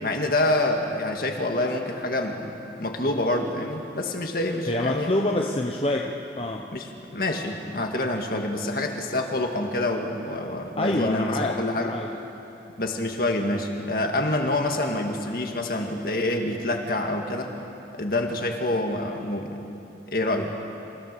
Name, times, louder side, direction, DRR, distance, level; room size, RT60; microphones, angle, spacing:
voice 1, 0.0-5.1 6.7-11.9 12.8-17.5 17.9-19.5 20.1-20.6, left 1 dB, 55° left, 3 dB, 1.9 m, -27 dB
voice 2, 4.7-6.7 10.8-12.1, left 1 dB, 30° left, 0 dB, 0.9 m, -26 dB
27.5 x 16.0 x 6.8 m, 2.9 s
head